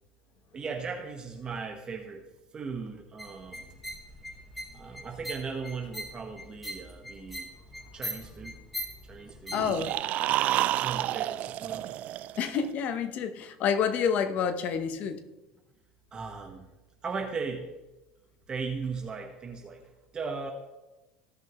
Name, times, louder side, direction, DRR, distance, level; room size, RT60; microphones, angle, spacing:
voice 1, 0.5-2.2 2.5-3.8 4.7-7.5 7.9-8.6 9.1-10.1 10.8-11.9 16.1-16.7 17.0-17.7 18.5-19.8 20.1-20.5, right 5 dB, 25° right, 1.3 m, -37 dB
sound 1, 3.2-9.9, equal, ahead, 3.2 m, -41 dB
voice 2, 9.5-9.9 12.4-15.2, left 7 dB, 50° left, 1.0 m, -28 dB
sound 2, 9.5-12.7, right 14 dB, 50° right, 0.3 m, -29 dB
16.0 x 5.6 x 3.1 m
supercardioid pair, 120°, 3 cm